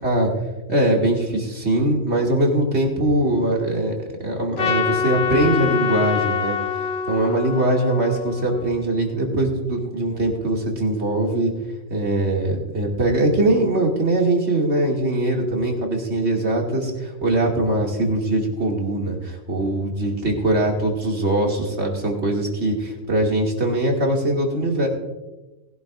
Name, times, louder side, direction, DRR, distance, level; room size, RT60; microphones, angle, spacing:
voice 1, 0.7-3.9 4.2-6.6 7.1-11.5 11.9-24.9, right 1 dB, 70° right, 0 dB, 2.7 m, -21 dB
Trumpet, 4.6-9.0, left 6 dB, 65° left, 1.0 m, -25 dB
20.0 x 11.0 x 2.6 m, 1.1 s
omnidirectional pair, 1.2 m